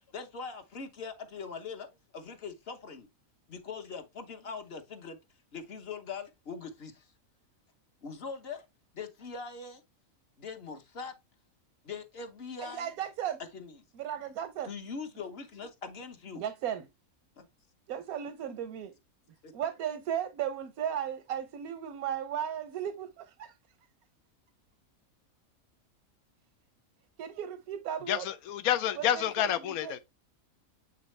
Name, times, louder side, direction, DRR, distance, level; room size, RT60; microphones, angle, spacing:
voice 1, 0.1-1.9 2.1-3.1 3.5-5.2 5.5-7.1 8.0-8.6 8.9-9.8 10.4-11.1 11.8-12.9 13.5-13.8 14.6-16.4 17.4-17.5 18.2-18.3 19.4-19.5, left 5 dB, 50° left, 1.1 m, -42 dB
voice 2, 12.6-13.4 13.9-14.7 16.4-16.9 17.9-18.9 19.5-23.5 27.2-28.3 29.0-29.9, right 9 dB, 85° right, 1.2 m, -35 dB
voice 3, 28.1-30.0, left 11 dB, 85° left, 1.1 m, -29 dB
8.2 x 3.9 x 3.2 m
omnidirectional pair, 1.5 m